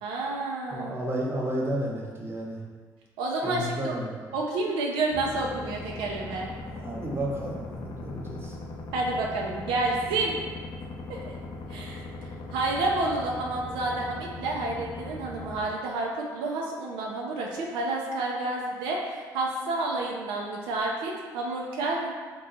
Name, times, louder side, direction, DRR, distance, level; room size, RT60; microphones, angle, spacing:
voice 1, 0.0-0.9 3.2-3.9 4.3-6.5 8.9-10.4 11.1-11.3 11.7-22.1, right 2 dB, 85° right, -1 dB, 0.4 m, -30 dB
voice 2, 0.7-2.6 3.4-4.3 6.7-8.6, right 1 dB, 30° right, -2 dB, 0.8 m, -32 dB
sound 1, 5.1-15.6, left 2 dB, 55° left, 0.4 m, -39 dB
2.9 x 2.2 x 3.9 m, 1.5 s
supercardioid pair, 75°, 8 cm